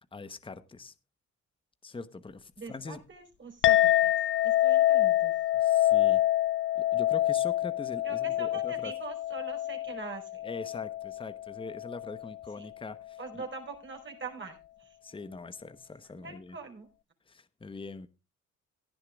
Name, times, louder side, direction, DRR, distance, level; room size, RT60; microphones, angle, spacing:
voice 1, 0.1-0.9 1.8-3.0 5.5-6.2 6.7-8.9 10.4-13.4 15.0-16.6 17.3-18.1, left 3 dB, 15° left, 13 dB, 1.0 m, -43 dB
voice 2, 2.6-5.4 8.0-10.4 12.5-12.7 13.2-15.0 16.0-16.9, right 4 dB, 40° right, 3 dB, 4.6 m, -43 dB
Chink clink, 3.6-12.3, left 13 dB, 45° left, 0.5 m, -26 dB
16.5 x 11.0 x 2.4 m, 0.27 s
cardioid pair, 90°, 30 cm